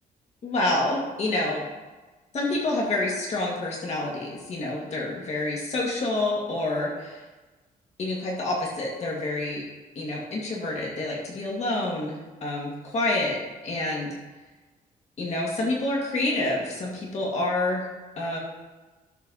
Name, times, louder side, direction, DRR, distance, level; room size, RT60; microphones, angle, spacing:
voice 1, 0.4-1.7 2.3-7.2 8.0-9.6 10.0-13.4 13.6-14.2 15.2-17.9 18.2-18.4, left 2 dB, 45° left, -3 dB, 2.1 m, -28 dB
13.0 x 4.7 x 5.6 m, 1.2 s
wide cardioid pair, 170°, 15 cm